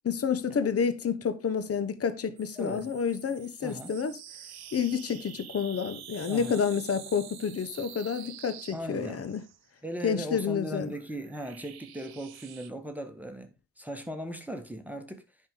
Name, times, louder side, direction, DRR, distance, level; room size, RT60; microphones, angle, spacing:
voice 1, 0.0-4.2 4.7-9.4 10.0-10.9, left 6 dB, 35° left, 1.1 m, -29 dB
sound 1, 2.4-9.7 10.5-12.7, right 10 dB, 60° right, 1.3 m, -47 dB
voice 2, 2.5-2.9 3.6-3.9 6.3-6.6 8.7-9.2 9.8-13.5 13.8-15.2, equal, 5° right, 1.6 m, -38 dB
10.0 x 5.7 x 3.8 m
hypercardioid pair, 50°, 41 cm